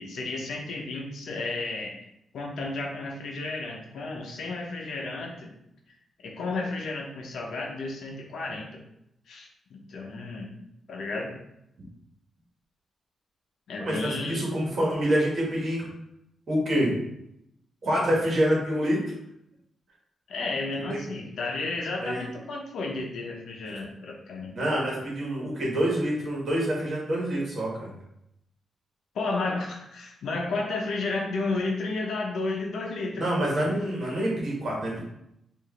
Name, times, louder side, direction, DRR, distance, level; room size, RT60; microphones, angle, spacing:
voice 1, 0.0-2.0 2.3-5.5 6.2-8.8 9.3-10.5 10.9-11.3 13.7-14.4 20.3-24.5 29.1-33.7, left 3 dB, 70° left, 0 dB, 0.7 m, -32 dB
voice 2, 13.8-15.8 16.5-16.9 17.8-19.0 20.9-21.0 22.0-22.2 24.4-27.9 33.2-35.0, equal, 45° right, -4 dB, 1.4 m, -26 dB
4.7 x 2.6 x 3.1 m, 0.80 s
wide cardioid pair, 170°, 0 cm